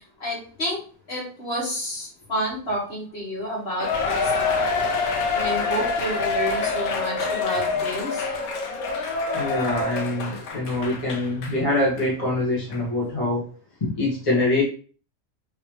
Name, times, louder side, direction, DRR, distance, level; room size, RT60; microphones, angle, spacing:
voice 1, 0.2-0.8 1.1-4.9 5.3-8.2, equal, 50° left, -4 dB, 1.8 m, -30 dB
Cheering, 3.8-11.6 12.0-12.1 12.7-12.8, left 4 dB, 85° left, 1.1 m, -26 dB
voice 2, 9.3-13.5 13.8-14.6, left 2 dB, 25° left, -5 dB, 1.0 m, -24 dB
3.3 x 2.9 x 3.0 m, 0.40 s
omnidirectional pair, 1.5 m